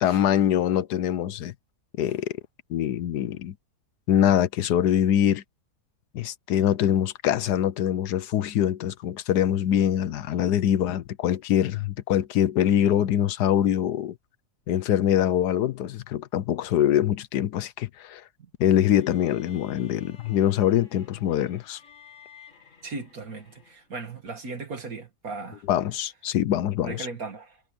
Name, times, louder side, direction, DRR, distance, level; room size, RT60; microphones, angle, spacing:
voice 1, 0.0-1.5 2.0-2.3 2.7-3.5 4.1-5.4 6.1-14.1 14.7-18.2 18.6-21.8 25.7-27.1, left 10 dB, 85° left, 1.4 m, -24 dB
sound 1, 18.7-24.0, left 6 dB, 50° left, 3.2 m, -53 dB
voice 2, 22.8-25.6 26.8-27.6, right 3 dB, 60° right, 2.4 m, -37 dB
omnidirectional pair, 1.7 m